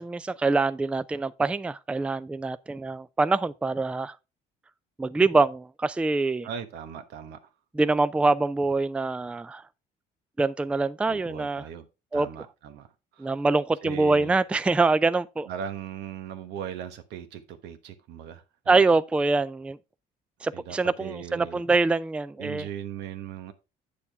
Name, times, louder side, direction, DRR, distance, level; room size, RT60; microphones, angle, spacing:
voice 1, 0.0-4.2 5.0-6.5 7.7-9.6 10.4-11.6 12.1-12.3 13.2-15.5 18.7-19.8 20.4-22.7, right 3 dB, 5° right, 0.3 m, -24 dB
voice 2, 6.4-7.4 11.1-11.9 12.1-12.9 13.1-13.3 13.8-14.4 15.5-18.7 20.5-21.6 22.4-23.5, right 9 dB, 85° right, 1.2 m, -38 dB
8.6 x 6.9 x 3.5 m
cardioid pair, 110°, 17 cm